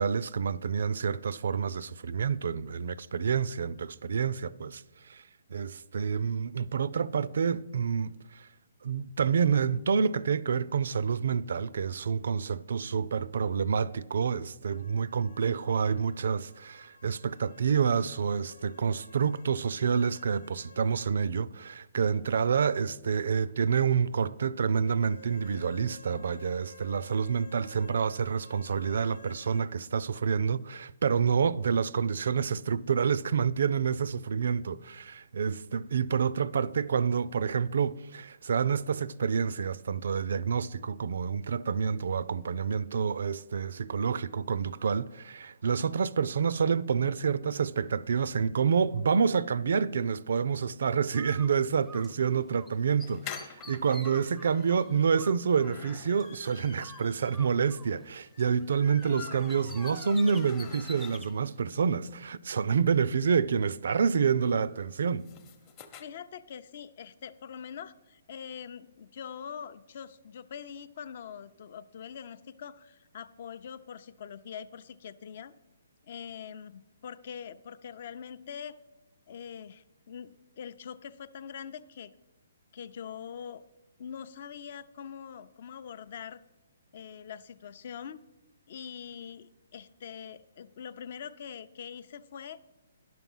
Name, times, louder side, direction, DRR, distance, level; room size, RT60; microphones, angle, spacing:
voice 1, 0.0-4.8 5.1-5.2 5.5-8.5 8.8-65.3, right 6 dB, 70° right, 0.4 m, -28 dB
sound 1, 14.6-21.2 21.5-21.6 24.6-29.7, left 2 dB, 80° left, 1.0 m, -53 dB
Bird, 51.1-52.7 53.0-56.4 56.8-58.9 59.2-61.3, equal, ahead, 0.5 m, -49 dB
sound 2, 53.0-61.6 62.0-62.1 62.3-62.4 62.6-66.0, left 8 dB, 30° left, 0.8 m, -47 dB
voice 2, 66.0-75.5 76.0-78.8 79.3-82.1 82.7-83.6 84.0-86.4 86.9-88.2 88.7-92.6, left 7 dB, 50° left, 0.5 m, -43 dB
10.5 x 6.0 x 5.5 m
hypercardioid pair, 155°, 0 cm